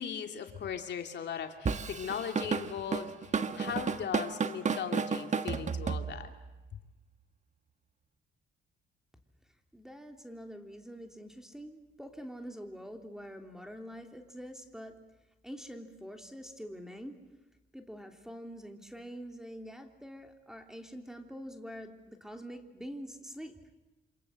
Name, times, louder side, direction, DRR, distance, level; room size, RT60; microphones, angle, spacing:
voice 1, 0.0-3.1 3.6-6.3, left 7 dB, 60° left, 5 dB, 2.8 m, -38 dB
Drum kit / Drum, 1.7-6.5, right 5 dB, 35° right, 1.5 m, -32 dB
voice 2, 9.7-15.0 15.4-17.2 17.7-23.6, equal, ahead, 5 dB, 3.3 m, -45 dB
28.0 x 26.5 x 7.7 m, 1.1 s
cardioid pair, 90°, 20 cm